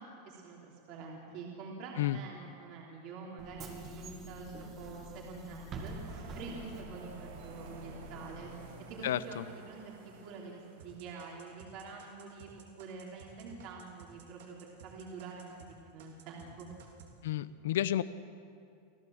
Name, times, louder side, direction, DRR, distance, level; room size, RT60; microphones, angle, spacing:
voice 1, 0.0-8.5 8.9-9.9 10.2-12.5 12.8-16.7, right 4 dB, 45° right, -2 dB, 3.3 m, -46 dB
Bus / Engine, 3.4-8.5, right 2 dB, 30° right, 2.3 m, -46 dB
sound 1, 5.8-11.3, right 4 dB, 65° right, 5.3 m, -51 dB
voice 2, 9.0-9.4 17.2-18.0, left 12 dB, 80° left, 16 dB, 0.8 m, -31 dB
sound 2, 10.8-15.7 16.0-17.1, right 8 dB, 85° right, 3.4 m, -55 dB
26.5 x 16.0 x 7.7 m, 2.5 s
supercardioid pair, 160°, 0 cm